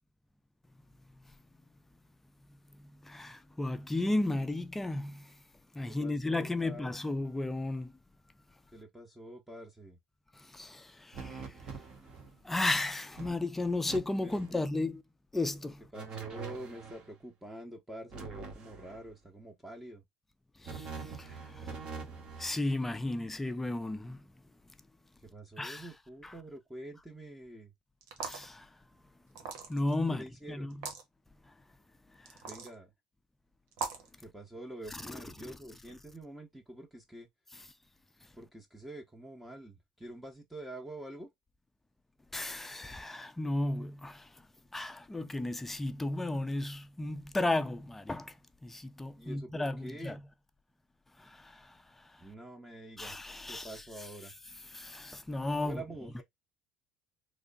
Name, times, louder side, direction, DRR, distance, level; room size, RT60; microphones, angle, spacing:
voice 1, 2.7-5.4 5.7-7.9 10.3-11.9 12.4-15.0 15.3-15.8 20.6-21.8 22.4-24.3 25.6-25.9 26.2-26.4 28.2-28.7 29.7-30.9 31.5-31.6 32.1-32.4 34.9-35.6 37.5-37.7 42.3-44.5 44.7-48.4 48.6-50.2 51.2-52.3 53.0-54.3 54.6-55.8, left 2 dB, 10° left, 0.4 m, -35 dB
voice 2, 5.9-6.9 8.7-10.0 14.2-14.6 15.9-20.0 25.2-27.7 30.1-30.7 32.5-32.9 34.2-37.3 38.4-41.3 49.2-50.2 52.2-53.2 53.5-54.3 55.6-56.2, right 1 dB, 5° right, 0.8 m, -46 dB
sound 1, 11.1-12.4 12.7-12.8 13.2-14.0 14.3-14.6 15.9-17.1 18.1-19.1 20.6-22.6, right 5 dB, 50° right, 1.3 m, -44 dB
sound 2, 28.0-28.5 29.3-29.9 30.7-31.0 32.3-32.7 33.7-34.1, right 5 dB, 80° right, 1.0 m, -39 dB
3.2 x 2.0 x 3.8 m
supercardioid pair, 95°, 2 cm